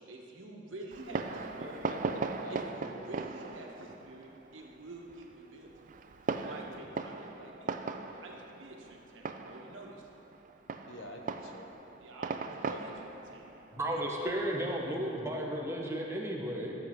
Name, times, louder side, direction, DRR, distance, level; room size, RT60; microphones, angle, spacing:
voice 1, 0.0-1.9 2.5-5.7 6.4-7.8 8.2-10.1 12.0-13.6, right 2 dB, 85° right, -1 dB, 1.2 m, -48 dB
Fireworks, 0.9-15.1, right 4 dB, 45° right, 0.4 m, -39 dB
voice 2, 1.6-2.6 2.9-3.0 10.9-11.7 12.7-12.8 13.8-14.3 15.1-15.3, left 1 dB, 80° left, 3 dB, 0.7 m, -46 dB
voice 3, 13.7-16.7, right 1 dB, 15° right, -1 dB, 1.0 m, -34 dB
12.0 x 7.6 x 3.6 m, 3.0 s
head